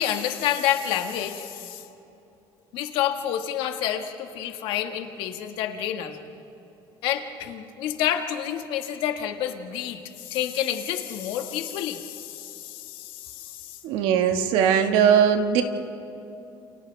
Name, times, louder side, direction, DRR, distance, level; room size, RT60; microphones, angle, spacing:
voice 1, 0.0-1.8 2.7-6.2 7.0-13.8, left 10 dB, 75° left, 5 dB, 1.8 m, -29 dB
voice 2, 13.8-15.6, right 8 dB, 80° right, 5 dB, 1.8 m, -20 dB
29.5 x 28.5 x 3.5 m, 2.9 s
cardioid pair, 115°, 9 cm